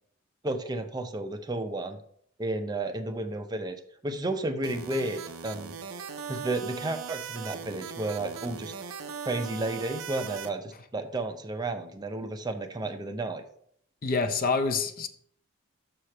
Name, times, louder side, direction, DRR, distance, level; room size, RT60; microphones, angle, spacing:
voice 1, 0.4-2.0 2.4-3.8 4.0-5.7 6.3-8.7 9.2-13.4, right 2 dB, 20° right, 7 dB, 0.5 m, -32 dB
sound 1, 4.6-10.5, right 7 dB, 90° right, 0.6 m, -39 dB
voice 2, 14.0-15.1, left 4 dB, 40° left, 9 dB, 0.5 m, -26 dB
6.7 x 4.9 x 4.4 m, 0.66 s
head